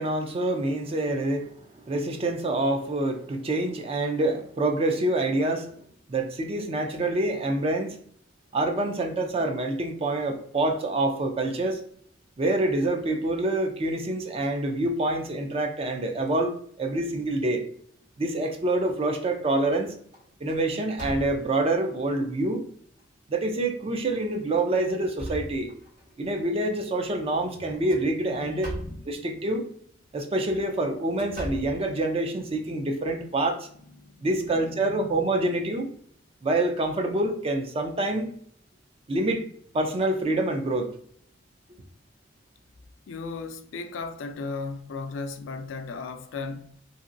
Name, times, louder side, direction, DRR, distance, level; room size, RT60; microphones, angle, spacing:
voice 1, 0.0-5.7 6.1-8.0 8.5-11.8 12.4-17.6 18.2-20.0 20.4-22.6 23.3-25.7 26.2-28.7 29.1-29.6 30.1-33.7 34.2-35.9 36.4-38.3 39.1-39.4 39.7-40.9, right 2 dB, 30° right, 0.4 m, -26 dB
sound 1, 18.6-19.1 19.5-19.8 20.1-21.7 22.4-22.5 23.0-23.1 24.0-24.2 24.7-26.1 27.7-29.1 30.2-32.5, equal, 50° right, 1.4 m, -40 dB
voice 2, 27.5-28.0 28.3-29.5 32.6-32.9 34.0-35.3 43.1-46.8, left 4 dB, 90° left, 0.4 m, -37 dB
3.0 x 2.7 x 2.5 m
head